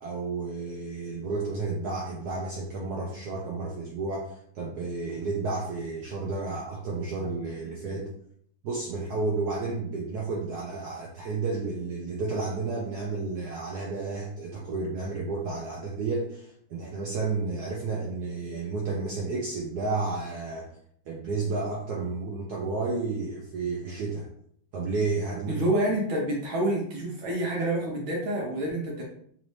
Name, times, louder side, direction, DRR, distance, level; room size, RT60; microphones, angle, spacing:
voice 1, 0.0-8.1 8.6-20.7 21.1-24.3 24.7-25.6, right 3 dB, 85° right, -3 dB, 0.8 m, -31 dB
voice 2, 25.5-29.0, right 1 dB, 70° right, -2 dB, 1.5 m, -28 dB
4.1 x 2.7 x 3.1 m, 0.65 s
omnidirectional pair, 2.4 m